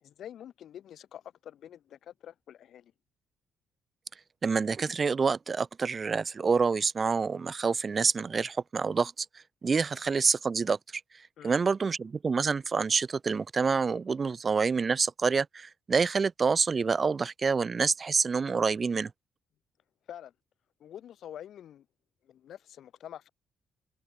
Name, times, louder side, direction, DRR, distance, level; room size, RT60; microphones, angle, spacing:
voice 1, 0.0-2.9 11.4-11.6 20.1-20.3 20.8-21.9 22.2-23.3, left 10 dB, 70° left, 2.3 m, -46 dB
voice 2, 4.4-9.3 9.6-10.8 11.4-19.1, right 5 dB, 35° right, 0.4 m, -27 dB
cardioid pair, 90°, 0 cm